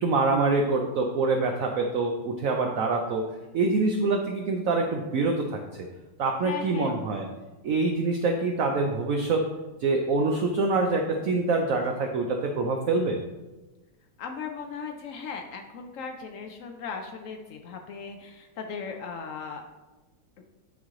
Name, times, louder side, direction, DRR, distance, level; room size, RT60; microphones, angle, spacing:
voice 1, 0.0-5.6 6.2-7.3 7.6-9.4 9.8-13.2, right 3 dB, 75° right, 3 dB, 0.7 m, -25 dB
voice 2, 6.4-6.9 14.2-19.6, left 5 dB, 90° left, 4 dB, 0.7 m, -37 dB
9.1 x 3.1 x 3.7 m, 1.1 s
omnidirectional pair, 2.0 m